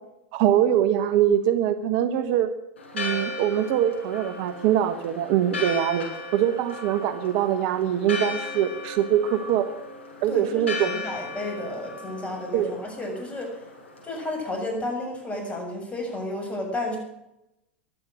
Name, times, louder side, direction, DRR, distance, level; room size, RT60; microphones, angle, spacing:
voice 1, 0.3-2.5 2.9-6.1 6.3-9.7 10.2-10.9 12.5-12.7, right 10 dB, 55° right, 11 dB, 1.3 m, -23 dB
Church bell, 2.8-14.3, left 3 dB, 85° left, 7.0 m, -36 dB
voice 2, 10.2-13.7 14.0-17.0, left 1 dB, 20° left, 2 dB, 7.2 m, -32 dB
15.5 x 11.5 x 6.5 m, 0.86 s
hypercardioid pair, 95°, 6 cm